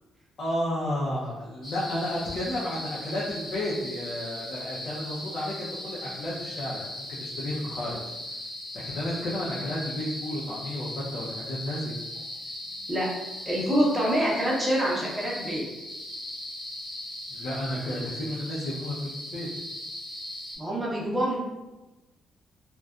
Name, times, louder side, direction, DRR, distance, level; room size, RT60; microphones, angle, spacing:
voice 1, 0.4-8.0 8.7-11.9 17.3-19.5, left 1 dB, 60° left, -8 dB, 0.6 m, -32 dB
sound 1, 1.6-20.6, left 1 dB, 35° left, 1.0 m, -38 dB
voice 2, 13.5-15.6 20.6-21.4, equal, 10° right, -5 dB, 0.8 m, -26 dB
2.5 x 2.2 x 2.3 m, 1.1 s
cardioid pair, 90°, 0 cm